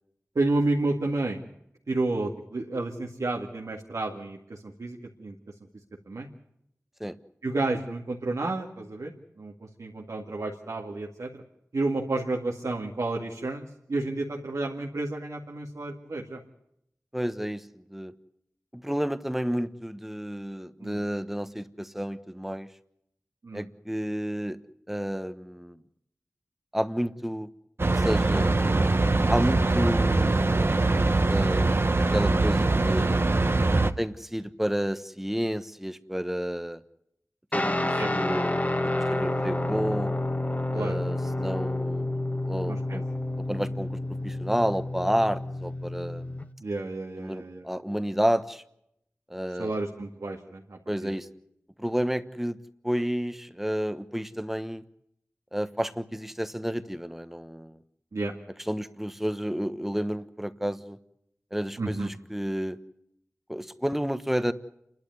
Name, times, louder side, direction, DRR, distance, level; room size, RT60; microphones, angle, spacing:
voice 1, 0.4-1.4 1.9-5.3 6.1-6.3 7.4-9.1 9.4-9.5 9.8-11.4 11.7-16.4 20.8-21.0 23.4-23.7 33.8-34.0 38.0-38.1 40.7-41.0 42.7-43.0 46.6-47.6 49.6-51.1 58.1-58.3 61.8-62.1, right 2 dB, 80° right, -1 dB, 2.1 m, -31 dB
voice 2, 17.1-18.1 18.7-22.7 23.5-24.6 24.9-25.8 26.7-27.5 27.9-28.6 29.3-30.8 31.3-33.3 34.0-36.8 37.5-40.1 40.7-43.1 43.4-46.3 47.2-48.6 49.3-49.7 50.9-51.3 51.8-52.6 52.8-54.8 55.5-57.8 58.6-61.0 61.5-62.8 63.5-64.5, equal, 5° right, 12 dB, 1.2 m, -31 dB
sound 1, 27.8-33.9, right 2 dB, 50° right, 1.0 m, -23 dB
Guitar, 37.5-46.4, left 1 dB, 30° left, 1.5 m, -29 dB
29.0 x 12.0 x 9.5 m, 0.78 s
wide cardioid pair, 50°, 5 cm